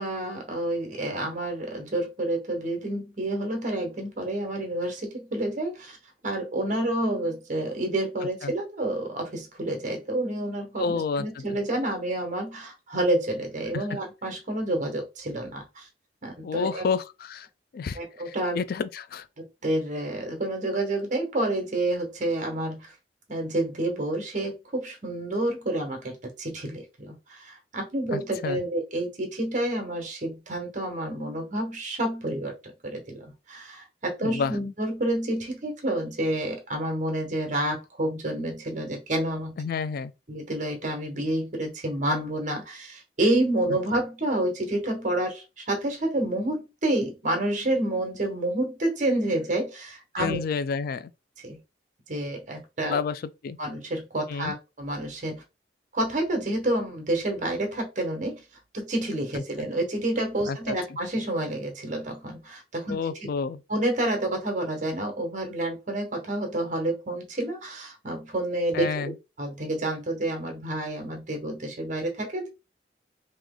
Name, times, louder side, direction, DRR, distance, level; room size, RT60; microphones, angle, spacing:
voice 1, 0.0-6.0 6.2-15.9 16.2-16.8 18.0-18.6 19.4-22.9 23.3-32.5 32.8-39.5 40.3-50.4 51.4-51.6 52.1-53.0 53.6-55.4 55.9-58.4 58.7-63.0 63.7-72.5, right 1 dB, 45° right, 1.3 m, -29 dB
voice 2, 10.8-11.4 13.7-14.0 16.4-17.5 17.7-18.0 18.3-19.3 28.1-28.6 34.2-34.5 39.6-40.1 43.7-43.8 50.2-51.1 52.8-53.6 54.3-54.5 59.3-59.7 60.5-61.0 62.9-63.6 68.7-69.2, left 5 dB, 60° left, 0.3 m, -30 dB
3.1 x 3.0 x 3.8 m
head